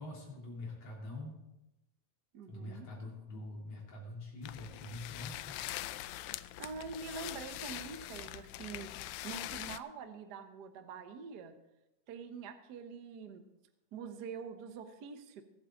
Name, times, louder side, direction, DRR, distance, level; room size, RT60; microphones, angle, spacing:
voice 1, 0.0-1.4 2.5-5.6, left 2 dB, 55° left, -2 dB, 4.1 m, -45 dB
voice 2, 2.3-2.9 6.6-11.5 12.1-13.4 13.9-15.4, right 5 dB, 70° right, 8 dB, 0.9 m, -45 dB
sound 1, 4.4-9.8, left 15 dB, 80° left, 1.9 m, -43 dB
22.0 x 8.4 x 3.9 m, 0.93 s
omnidirectional pair, 3.3 m